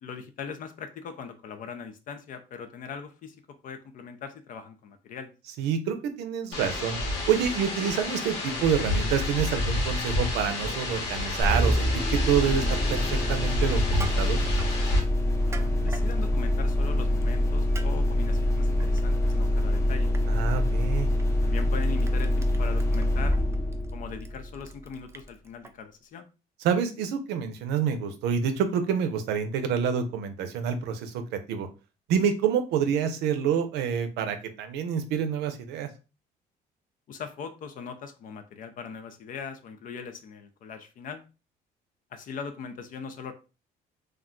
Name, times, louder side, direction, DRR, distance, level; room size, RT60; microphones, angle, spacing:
voice 1, 0.0-3.4 3.6-5.3 15.4-20.1 21.4-23.4 23.9-26.3 37.1-41.2 42.1-43.3, left 6 dB, 55° left, 8 dB, 0.4 m, -40 dB
voice 2, 5.6-7.0 7.3-14.4 20.3-21.1 26.6-31.2 31.5-31.7 32.1-35.9, right 7 dB, 90° right, 8 dB, 0.5 m, -27 dB
sound 1, 6.5-15.0, left 2 dB, 85° left, 1.1 m, -30 dB
sound 2, 11.4-24.9, left 1 dB, 15° left, 0.7 m, -25 dB
Crushing, 13.8-14.7 15.3-16.1 17.2-17.4 17.7-17.9 18.2-19.3 19.7-19.9 20.1-20.2 21.2-21.3 21.6-25.7, right 4 dB, 15° right, 0.3 m, -43 dB
2.4 x 2.2 x 3.7 m, 0.32 s
cardioid pair, 110°, 17 cm